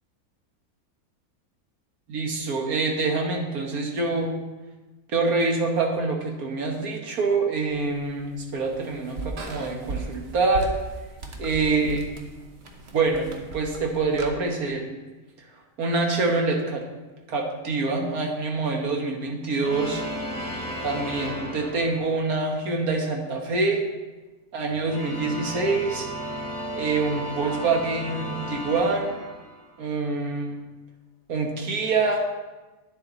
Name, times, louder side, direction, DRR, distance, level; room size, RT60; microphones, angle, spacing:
voice 1, 2.1-4.3 5.1-10.7 11.4-12.3 12.9-13.3 13.5-14.9 15.8-16.8 17.3-20.0 20.8-23.8 24.5-26.1 26.8-29.2 29.8-30.6 31.3-32.3, right 3 dB, 75° right, 1 dB, 1.7 m, -25 dB
sound 1, 7.7-14.3, right 3 dB, 50° right, 1.1 m, -37 dB
sound 2, 19.6-22.4 24.6-29.8, equal, 5° left, 1.4 m, -34 dB
10.0 x 7.0 x 3.9 m, 1.2 s
omnidirectional pair, 1.6 m